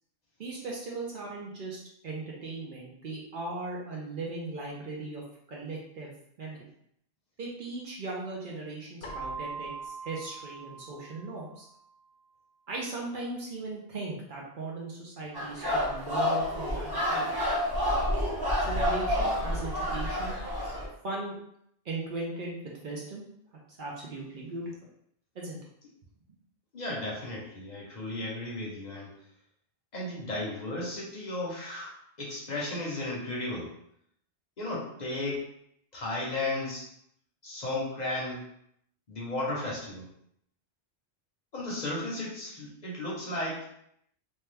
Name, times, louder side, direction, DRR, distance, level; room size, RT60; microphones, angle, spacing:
voice 1, 0.4-5.2 5.5-6.1 6.4-6.7 7.4-11.7 12.7-17.3 18.6-20.4 21.0-21.3 21.8-23.2 23.8-24.6 25.3-25.6, right 3 dB, 55° right, -3 dB, 0.7 m, -38 dB
Keyboard (musical), 9.0-11.7, right 4 dB, 80° left, 0.9 m, -41 dB
sound 1, 15.3-20.9, left 1 dB, 20° right, 0.9 m, -29 dB
voice 2, 26.7-29.1 29.9-31.9 32.2-33.7 34.6-35.5 35.9-36.9 37.4-38.4 39.1-40.1 41.5-43.7, left 2 dB, 45° left, -4 dB, 0.7 m, -34 dB
2.8 x 2.2 x 3.2 m, 0.72 s
omnidirectional pair, 1.1 m